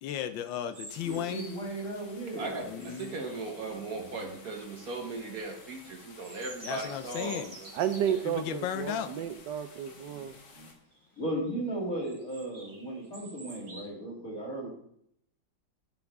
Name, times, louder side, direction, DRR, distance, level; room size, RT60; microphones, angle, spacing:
voice 1, 0.0-1.6 2.6-3.1 6.6-7.6 8.2-9.1, left 9 dB, 85° left, 1.4 m, -35 dB
sound 1, 0.7-1.8 2.3-4.0 4.6-5.1 5.5-8.4 8.9-9.1 9.5-9.6 10.0-10.3 10.9-11.5 12.0-13.9, right 2 dB, 40° right, 2.0 m, -49 dB
sound 2, 0.9-10.7, left 4 dB, 65° left, 2.0 m, -53 dB
voice 2, 1.0-2.9 10.1-10.2 10.5-10.7 11.2-14.7, right 1 dB, 50° left, 3.2 m, -36 dB
voice 3, 2.4-7.7, right 3 dB, 55° right, 1.5 m, -38 dB
voice 4, 7.7-10.4, right 9 dB, 75° right, 1.2 m, -32 dB
12.5 x 5.9 x 3.5 m
omnidirectional pair, 2.0 m